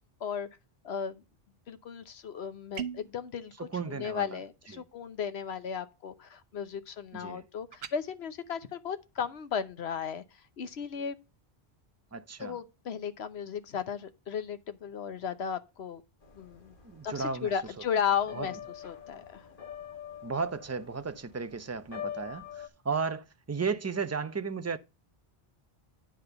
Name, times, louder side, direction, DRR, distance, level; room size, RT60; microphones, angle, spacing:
voice 1, 0.8-1.2 1.7-11.2 12.4-16.0 16.3-16.7 17.0-18.6 18.8-19.5, left 7 dB, 85° left, 1.1 m, -35 dB
sound 1, 2.7-3.1 7.7-8.0, right 8 dB, 80° right, 1.0 m, -37 dB
voice 2, 3.7-4.4 4.7-4.8 7.1-7.4 12.1-12.6 16.8-17.5 18.3-18.5 20.2-24.8, right 5 dB, 20° right, 0.5 m, -34 dB
sound 2, 16.2-22.7, left 9 dB, 55° left, 1.5 m, -45 dB
10.0 x 3.5 x 6.8 m
omnidirectional pair, 1.1 m